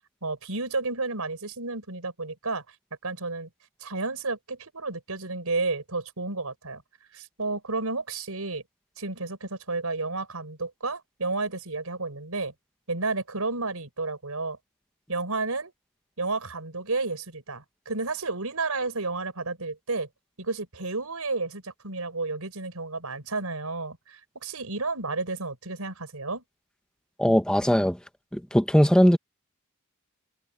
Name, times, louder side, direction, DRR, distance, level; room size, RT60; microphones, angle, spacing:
voice 1, 0.2-2.6 3.0-3.5 3.8-6.8 7.1-8.6 9.0-12.5 12.9-14.6 15.1-15.7 16.2-20.1 20.4-26.4, right 3 dB, 90° right, 4.5 m, -31 dB
voice 2, 27.2-28.0 28.3-29.2, equal, 5° left, 1.2 m, -20 dB
head